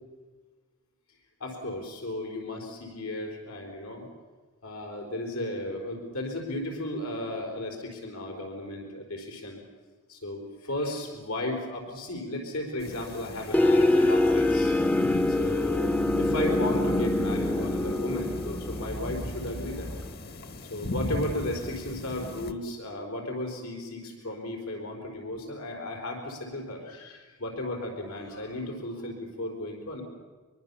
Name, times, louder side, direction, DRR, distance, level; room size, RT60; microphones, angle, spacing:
voice 1, 1.4-4.1 4.6-9.6 10.1-14.7 15.3-19.9 20.6-30.0, left 1 dB, 85° left, 1 dB, 4.4 m, -35 dB
sound 1, 12.8-22.5, left 1 dB, 45° left, 1.4 m, -39 dB
sound 2, 13.5-20.1, left 2 dB, 5° left, 0.7 m, -25 dB
24.0 x 22.5 x 7.0 m, 1.4 s
head